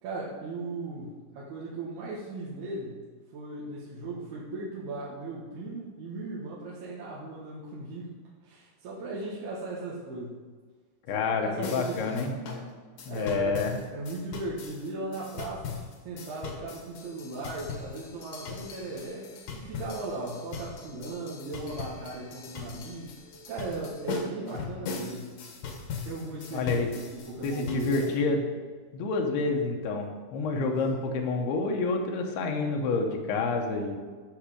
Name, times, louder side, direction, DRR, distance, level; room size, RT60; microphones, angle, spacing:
voice 1, 0.0-3.0 3.3-8.1 8.4-10.4 11.1-12.2 13.1-13.5 13.9-15.8 16.0-19.3 19.5-23.1 23.5-25.4 26.0-28.1 30.6-30.8, right 2 dB, 75° right, -6 dB, 3.4 m, -37 dB
voice 2, 11.1-12.3 13.1-13.8 26.5-26.9 27.4-28.4 28.9-34.0, left 3 dB, 80° left, 2 dB, 3.0 m, -28 dB
sound 1, 11.6-28.2, left 4 dB, 60° left, 2.2 m, -40 dB
10.5 x 7.2 x 5.0 m, 1.5 s
omnidirectional pair, 4.6 m